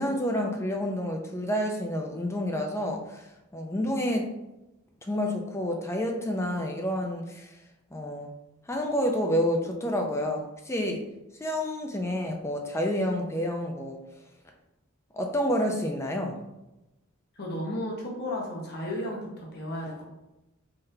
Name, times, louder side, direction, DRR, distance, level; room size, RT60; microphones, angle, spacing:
voice 1, 0.0-4.3 5.1-7.5 7.9-8.3 8.7-11.0 11.4-14.0 15.1-16.4, equal, 15° left, 2 dB, 0.5 m, -29 dB
voice 2, 17.4-20.0, left 1 dB, 50° left, -2 dB, 1.0 m, -34 dB
3.8 x 3.3 x 2.7 m, 0.95 s
head